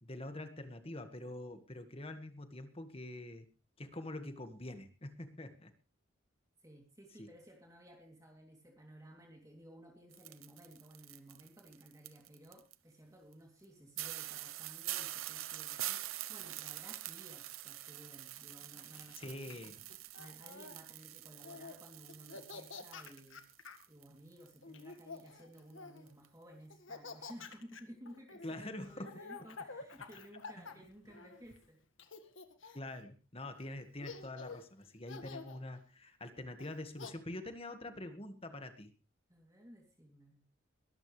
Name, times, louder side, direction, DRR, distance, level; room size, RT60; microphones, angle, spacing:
voice 1, 0.0-3.5 3.8-5.7 7.2-7.3 19.2-19.8 28.4-29.1 32.7-38.9, left 1 dB, 30° left, 8 dB, 1.8 m, -45 dB
voice 2, 6.6-19.4 19.6-23.4 23.9-31.8 39.3-40.4, equal, 15° right, 0 dB, 3.0 m, -56 dB
sound 1, 10.1-12.7 13.3-13.4 13.6-13.7 14.0-24.1 24.3-25.3 25.6-25.7 26.1-26.3, right 15 dB, 85° right, 0.9 m, -45 dB
Laughter, 18.4-20.8 21.3-21.8 22.1-23.8 24.6-26.1 26.7-31.6 32.0-33.0 33.6-33.7 34.0-34.7 35.1-35.6 36.6-37.1, left 4 dB, 70° left, 1.8 m, -49 dB
22.0 x 13.5 x 3.3 m, 0.33 s
head